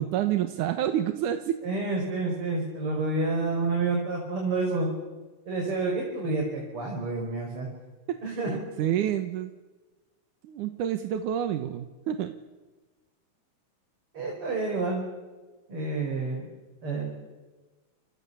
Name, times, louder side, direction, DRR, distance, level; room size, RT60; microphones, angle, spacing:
voice 1, 0.0-1.6 8.1-9.5 10.4-12.3, right 10 dB, 85° right, 8 dB, 2.7 m, -28 dB
voice 2, 1.6-4.9 5.5-7.7 8.2-8.6 14.1-15.0 15.7-16.4 16.8-17.1, right 3 dB, 45° right, 0 dB, 6.2 m, -29 dB
29.5 x 28.0 x 7.1 m, 1.2 s
omnidirectional pair, 3.5 m